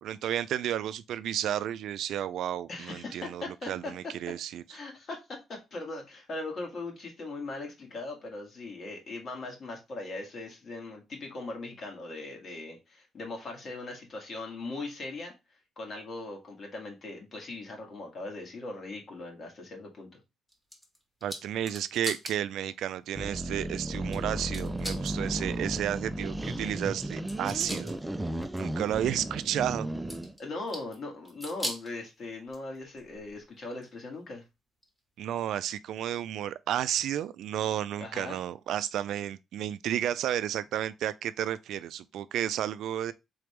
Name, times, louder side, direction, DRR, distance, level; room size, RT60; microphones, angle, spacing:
voice 1, 0.0-4.6 21.2-27.9 28.6-29.9 35.2-43.1, right 11 dB, 80° right, 0.3 m, -32 dB
voice 2, 2.7-3.9 4.7-15.3 15.8-20.2 30.4-34.4 38.0-38.4, left 2 dB, 50° left, 1.8 m, -39 dB
sound 1, 20.5-22.4 22.9-23.0 24.1-24.2 24.5-25.2 27.0-28.0 28.4-28.6 30.1-31.0 31.2-31.9 32.5-33.4 33.8-33.9 34.8-34.9, equal, 10° left, 1.4 m, -39 dB
sound 2, 23.2-30.3, right 1 dB, 10° right, 0.4 m, -34 dB
3.9 x 3.4 x 3.2 m
cardioid pair, 90°, 0 cm